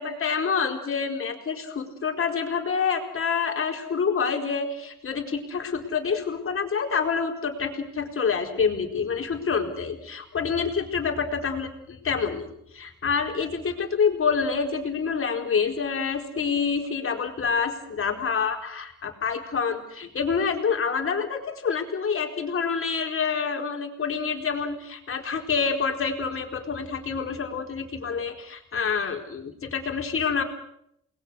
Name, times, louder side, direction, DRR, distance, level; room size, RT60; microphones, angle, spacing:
voice 1, 0.0-11.7 12.0-12.5 12.7-30.4, left 5 dB, 45° left, 3 dB, 4.6 m, -27 dB
28.5 x 21.0 x 6.6 m, 0.75 s
cardioid pair, 90°, 30 cm